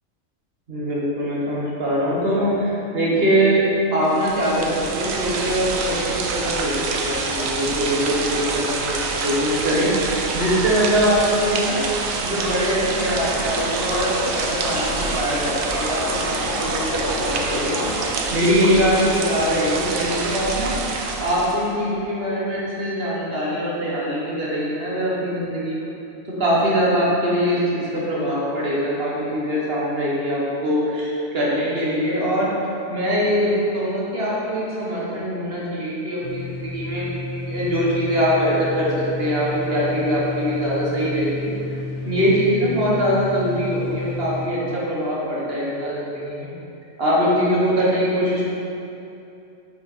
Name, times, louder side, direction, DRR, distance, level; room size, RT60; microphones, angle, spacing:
voice 1, 0.7-11.8 12.2-20.7 21.2-25.7 26.4-38.9 39.2-41.5 42.0-46.5 47.0-48.4, equal, 50° right, -6 dB, 1.2 m, -22 dB
sound 1, 4.0-21.7, right 4 dB, 85° right, 1.0 m, -27 dB
sound 2, 12.3-18.2, left 1 dB, 55° left, 1.9 m, -30 dB
sound 3, 36.2-44.5, left 3 dB, 80° left, 1.0 m, -31 dB
5.8 x 4.6 x 4.3 m, 2.7 s
omnidirectional pair, 1.3 m